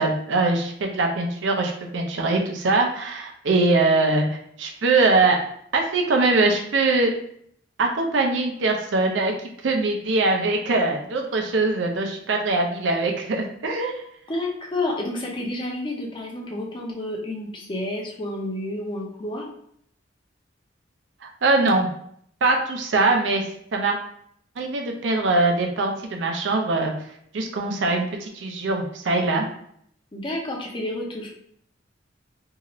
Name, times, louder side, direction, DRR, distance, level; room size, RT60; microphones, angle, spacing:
voice 1, 0.0-5.4 5.7-7.1 7.8-9.3 9.6-14.0 21.2-21.9 22.4-23.4 23.7-24.0 24.6-26.9 27.3-29.5, right 3 dB, 80° right, 2 dB, 0.5 m, -22 dB
voice 2, 14.3-19.5 30.1-31.3, left 1 dB, 25° left, -1 dB, 0.6 m, -30 dB
2.7 x 2.4 x 3.0 m, 0.67 s
head